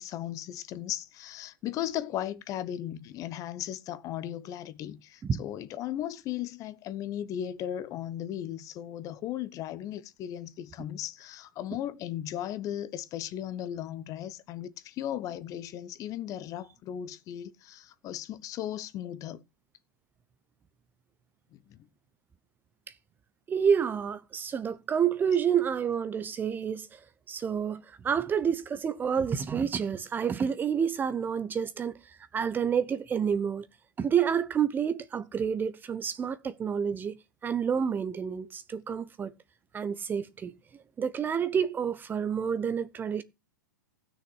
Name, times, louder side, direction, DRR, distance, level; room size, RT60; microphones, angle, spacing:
voice 1, 0.0-19.4 21.5-21.8, left 11 dB, 30° left, 1.1 m, -36 dB
voice 2, 23.5-27.0 27.3-32.0 32.3-33.7 34.0-37.2 37.4-39.3 39.7-40.5 41.0-43.2, right 7 dB, 20° right, 0.9 m, -29 dB
15.5 x 6.6 x 6.2 m
hypercardioid pair, 110°, 11 cm